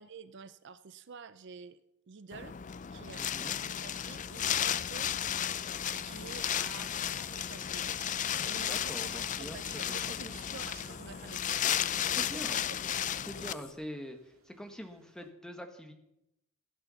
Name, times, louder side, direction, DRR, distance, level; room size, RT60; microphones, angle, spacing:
voice 1, 0.0-1.8 2.1-2.6 2.9-5.1 5.9-7.9 8.5-11.7 12.2-12.3, right 5 dB, 55° right, 14 dB, 0.5 m, -49 dB
Wind, 2.3-13.5, left 10 dB, 35° left, 0.4 m, -34 dB
voice 2, 3.2-3.6 8.7-10.3 12.1-12.6 13.3-15.9, equal, 5° left, 5 dB, 1.5 m, -44 dB
sound 1, 4.1-15.3, right 3 dB, 75° right, 2.3 m, -65 dB
sound 2, 4.2-13.7, left 6 dB, 70° left, 1.8 m, -53 dB
15.5 x 9.4 x 7.0 m, 0.84 s
head